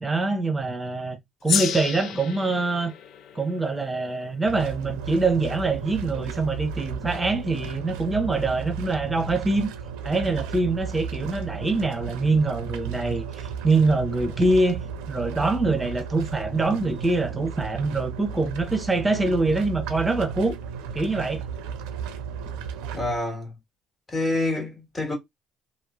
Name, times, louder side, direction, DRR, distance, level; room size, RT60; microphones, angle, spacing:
voice 1, 0.0-2.9 3.3-9.7 10.0-20.6 20.9-21.4, right 3 dB, 15° right, 0.9 m, -24 dB
Gong, 1.5-6.2, left 8 dB, 55° left, 0.3 m, -33 dB
sound 1, 4.4-23.2, right 7 dB, 80° right, 0.5 m, -35 dB
voice 2, 22.9-23.6 24.1-25.2, left 2 dB, 25° left, 1.5 m, -27 dB
3.0 x 2.0 x 2.4 m
supercardioid pair, 70°, 0 cm